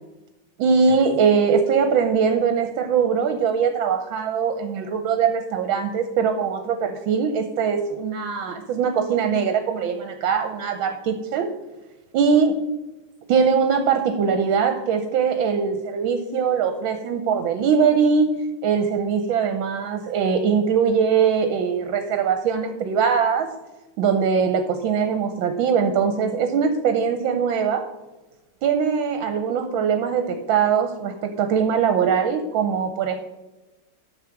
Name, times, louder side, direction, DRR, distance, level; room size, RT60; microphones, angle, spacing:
voice 1, 0.6-11.5 12.1-12.7 13.3-18.3 18.6-23.5 24.0-27.8 28.6-33.2, right 6 dB, 75° right, 7 dB, 1.5 m, -21 dB
7.2 x 6.4 x 5.8 m, 1.1 s
omnidirectional pair, 2.3 m